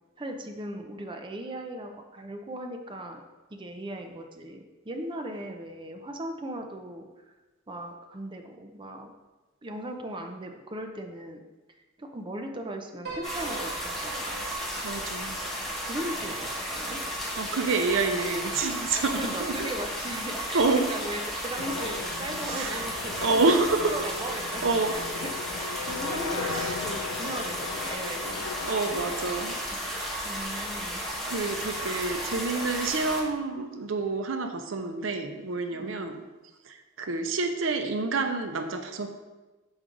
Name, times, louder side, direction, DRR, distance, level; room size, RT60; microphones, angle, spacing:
voice 1, 0.2-3.2 3.5-7.1 7.7-9.1 9.6-11.4 12.0-14.5 15.8-17.0 19.2-23.4 23.9-28.5 30.2-31.0 35.7-36.0, right 1 dB, 25° right, 4 dB, 0.5 m, -38 dB
Piano, 13.0-17.5, right 4 dB, 60° right, 1.8 m, -44 dB
sound 1, 13.2-33.2, equal, ahead, 1.3 m, -34 dB
voice 2, 14.8-15.4 17.4-19.7 20.5-20.8 22.4-22.8 23.2-23.9 24.6-25.0 26.4-26.9 28.7-29.6 29.9-30.2 31.3-36.2 36.7-39.1, right 3 dB, 80° right, 6 dB, 0.6 m, -28 dB
sound 2, 21.6-29.6, left 6 dB, 85° left, 0.4 m, -38 dB
6.2 x 5.1 x 3.8 m, 1.2 s
head